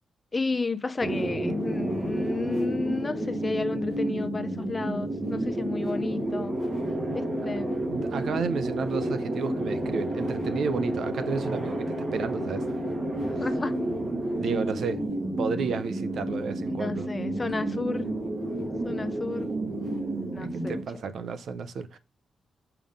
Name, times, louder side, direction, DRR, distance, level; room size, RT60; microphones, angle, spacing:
voice 1, 0.3-6.6 7.1-7.9 13.4-13.7 16.8-18.1 18.8-19.6 20.3-20.8, left 3 dB, 20° left, 0.7 m, -32 dB
sound 1, 1.0-20.8, right 1 dB, 35° right, 1.7 m, -30 dB
voice 2, 7.9-12.7 14.4-15.0 15.4-17.1 20.4-22.0, right 5 dB, 65° right, 0.6 m, -32 dB
6.8 x 3.7 x 5.4 m
wide cardioid pair, 160°, 0 cm